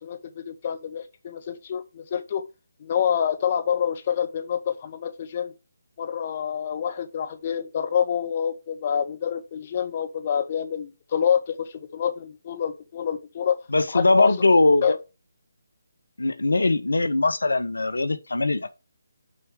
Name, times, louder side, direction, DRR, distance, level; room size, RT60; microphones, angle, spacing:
voice 1, 0.0-2.4 2.8-5.5 6.0-13.6 13.9-14.3 14.8-15.0, left 8 dB, 35° left, 1.0 m, -27 dB
voice 2, 13.7-15.0 16.2-18.7, left 2 dB, 70° left, 0.9 m, -21 dB
6.4 x 4.6 x 6.6 m
figure-of-eight pair, 145°, 0 cm